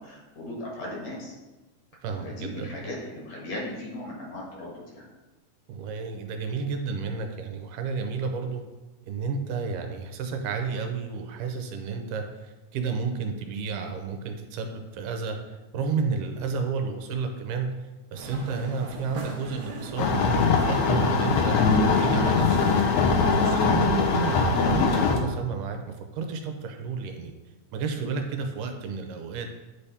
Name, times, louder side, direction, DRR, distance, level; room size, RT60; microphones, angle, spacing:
voice 1, 0.0-1.3 2.2-5.1, left 1 dB, 60° left, -3 dB, 2.5 m, -37 dB
voice 2, 2.0-2.9 5.7-8.6 9.0-17.7 18.1-21.6 22.0-22.9 23.4-27.3 27.7-29.5, right 5 dB, 85° right, 5 dB, 2.3 m, -31 dB
sound 1, 18.2-23.5, right 3 dB, 65° right, 1.7 m, -40 dB
sound 2, 20.0-25.2, left 4 dB, 75° left, 1.9 m, -22 dB
9.8 x 3.4 x 4.2 m, 1.1 s
omnidirectional pair, 3.7 m